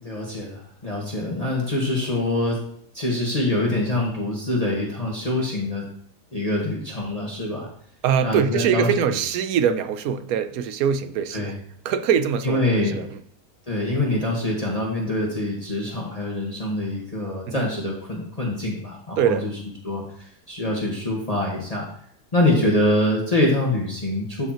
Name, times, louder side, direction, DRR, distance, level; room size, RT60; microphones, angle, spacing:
voice 1, 0.0-2.6 2.9-5.8 6.3-7.7 8.2-8.9 11.3-11.6 12.4-13.0 13.7-19.5 19.8-21.9 22.3-24.5, left 1 dB, 25° left, -4 dB, 1.5 m, -25 dB
voice 2, 8.0-11.5 11.8-13.2 17.5-17.6 19.2-19.5 22.5-22.6, right 8 dB, 75° right, 10 dB, 1.1 m, -23 dB
12.5 x 5.1 x 3.0 m, 0.65 s
omnidirectional pair, 1.6 m